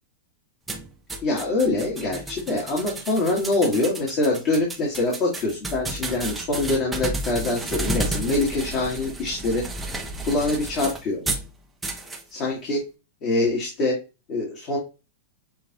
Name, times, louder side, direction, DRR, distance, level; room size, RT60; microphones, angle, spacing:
sound 1, 0.7-11.5 11.8-12.2, right 2 dB, 10° right, 0.8 m, -32 dB
voice 1, 1.2-9.6 10.2-11.2 12.3-12.8 13.2-14.0 14.3-14.8, left 2 dB, 35° left, -3 dB, 1.9 m, -24 dB
6.8 x 2.6 x 2.9 m, 0.28 s
hypercardioid pair, 140°, 0 cm